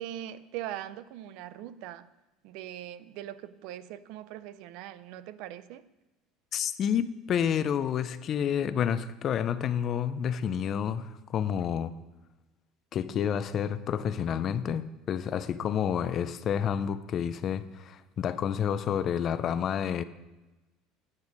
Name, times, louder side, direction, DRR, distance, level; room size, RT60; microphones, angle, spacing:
voice 1, 0.0-2.1 2.4-5.9, right 12 dB, 65° right, 16 dB, 0.4 m, -41 dB
voice 2, 6.5-11.9 12.9-20.0, left 8 dB, 35° left, 14 dB, 0.4 m, -29 dB
9.6 x 6.3 x 5.1 m, 1.1 s
cardioid pair, 155°, 0 cm